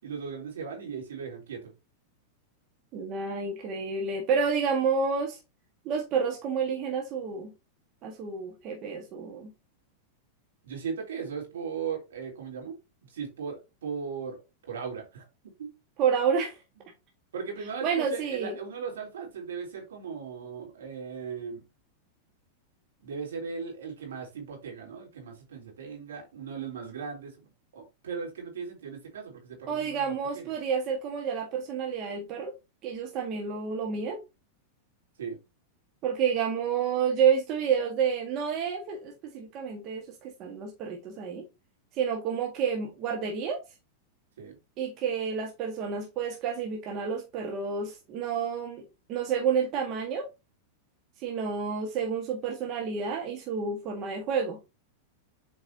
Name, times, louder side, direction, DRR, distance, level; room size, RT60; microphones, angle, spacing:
voice 1, 0.0-1.7 10.6-12.8 13.1-14.4 14.7-15.7 17.3-21.6 23.0-27.5 27.7-30.5 35.2-35.4 44.4-44.5, right 6 dB, 80° right, 3.4 m, -37 dB
voice 2, 2.9-5.4 5.8-7.5 8.0-9.5 16.0-16.6 17.8-18.5 29.7-32.5 32.8-34.2 36.0-41.4 41.9-43.6 44.8-50.3 51.2-54.6, right 6 dB, 45° right, 1.5 m, -29 dB
7.6 x 4.6 x 2.8 m
hypercardioid pair, 105°, 0 cm